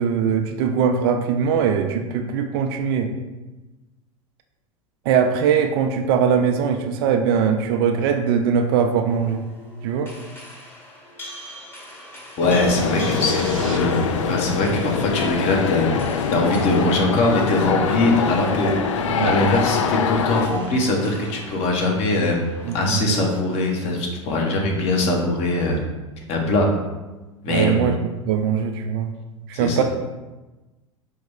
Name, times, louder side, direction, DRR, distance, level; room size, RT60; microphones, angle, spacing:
voice 1, 0.0-3.2 5.1-9.4 9.8-10.1 19.2-19.4 22.7-23.1 27.5-28.0 28.3-29.1 29.5-29.8, right 7 dB, 45° right, 6 dB, 0.4 m, -21 dB
sound 1, 9.1-22.9, equal, 10° left, 1.0 m, -41 dB
sound 2, 12.4-20.5, left 6 dB, 65° left, 0.4 m, -24 dB
voice 2, 12.4-14.0 14.2-15.9 16.3-18.7 19.2-22.5 22.7-25.8 26.3-26.7 27.4-27.7 29.5-29.8, left 2 dB, 40° left, 0 dB, 1.0 m, -21 dB
sound 3, 12.7-13.8, right 5 dB, 70° right, 0.8 m, -38 dB
4.7 x 3.0 x 3.5 m, 1.1 s
figure-of-eight pair, 85°, 17 cm